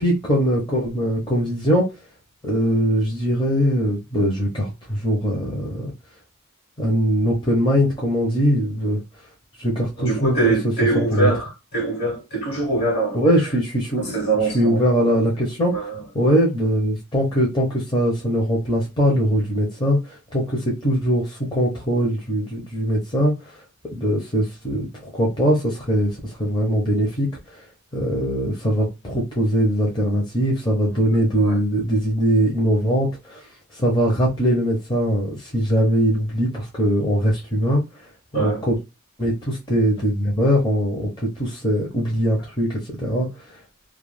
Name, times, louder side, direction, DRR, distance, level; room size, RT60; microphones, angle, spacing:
voice 1, 0.0-1.9 2.4-5.9 6.8-9.0 9.6-10.5 11.1-11.3 13.1-14.2 14.5-15.7 16.1-23.5 23.9-27.6 27.9-33.4 33.7-37.8 38.3-38.8 39.2-43.3, equal, 20° left, 0.6 m, -21 dB
voice 2, 10.0-13.2 14.0-14.8 15.7-16.0 28.2-28.3 31.4-31.6 38.3-38.6, right 3 dB, 50° left, 1.2 m, -23 dB
2.3 x 2.2 x 3.1 m
head